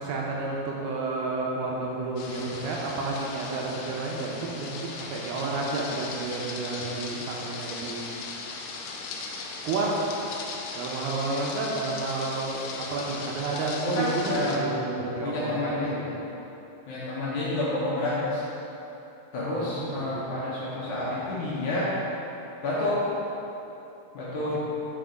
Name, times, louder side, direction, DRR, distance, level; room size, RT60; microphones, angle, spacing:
voice 1, 0.0-8.0 9.6-9.9 10.7-12.6 12.9-15.5 15.8-16.1 19.7-20.3 24.4-24.6, right 3 dB, 80° right, -2 dB, 2.5 m, -31 dB
sound 1, 2.2-14.6, left 4 dB, 90° left, 2.8 m, -38 dB
voice 2, 13.8-14.6 15.2-16.1 16.9-18.4 19.3-21.9 22.6-23.0 24.1-24.6, left 1 dB, 70° left, -8 dB, 1.9 m, -29 dB
6.0 x 5.8 x 5.0 m, 3.0 s
omnidirectional pair, 4.8 m